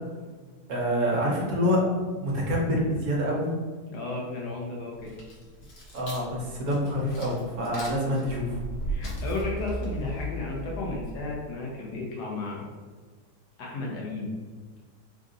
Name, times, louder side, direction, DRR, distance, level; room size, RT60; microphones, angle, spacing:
voice 1, 0.7-1.8 2.2-3.5 5.9-8.6, equal, 65° right, -2 dB, 1.2 m, -26 dB
voice 2, 3.9-5.1 8.9-12.7 13.6-14.3, left 2 dB, 75° left, -2 dB, 1.4 m, -33 dB
sound 1, 4.9-11.5, right 1 dB, 90° left, 1.7 m, -36 dB
3.8 x 2.6 x 3.7 m, 1.5 s
omnidirectional pair, 1.8 m